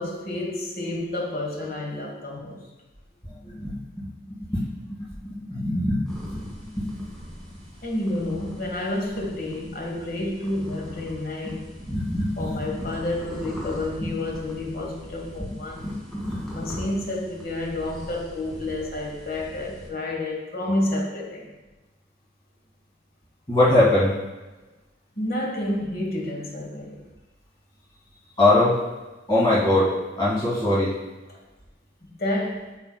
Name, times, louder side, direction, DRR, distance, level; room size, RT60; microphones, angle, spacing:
voice 1, 0.0-2.7 7.8-11.7 12.4-15.9 16.5-21.5 25.2-27.1 32.0-32.7, left 1 dB, 50° left, 1.4 m, -30 dB
voice 2, 3.4-7.1 11.9-12.6 14.0-14.1 15.5-15.6 15.8-16.7 23.5-24.2 28.4-28.8 29.3-31.0, left 1 dB, 20° left, 2.1 m, -23 dB
sound 1, 6.1-19.9, equal, ahead, 1.7 m, -41 dB
8.4 x 5.7 x 2.3 m
head